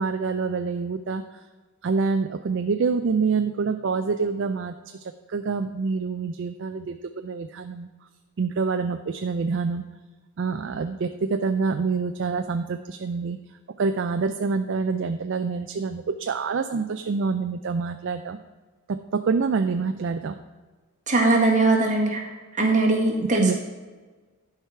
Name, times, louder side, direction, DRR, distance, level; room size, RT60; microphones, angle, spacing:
voice 1, 0.0-1.4 1.8-4.8 5.3-7.9 8.4-9.8 10.4-13.4 13.8-18.4 18.9-20.4 23.2-23.5, right 4 dB, 55° right, 8 dB, 0.4 m, -26 dB
voice 2, 21.1-22.2 22.6-23.5, right 2 dB, 35° right, -1 dB, 1.7 m, -20 dB
11.5 x 4.7 x 5.7 m, 1.4 s
head